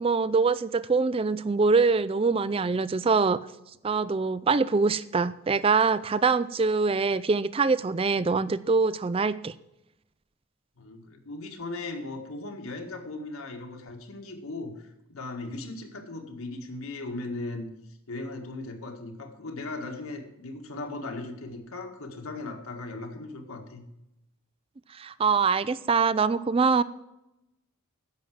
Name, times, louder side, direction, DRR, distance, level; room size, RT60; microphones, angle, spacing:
voice 1, 0.0-3.4 3.8-9.5 24.9-26.8, right 4 dB, 25° right, 16 dB, 0.3 m, -24 dB
voice 2, 10.8-17.7 18.1-23.8, left 2 dB, 70° left, 4 dB, 1.8 m, -38 dB
10.5 x 7.3 x 7.6 m, 0.90 s
head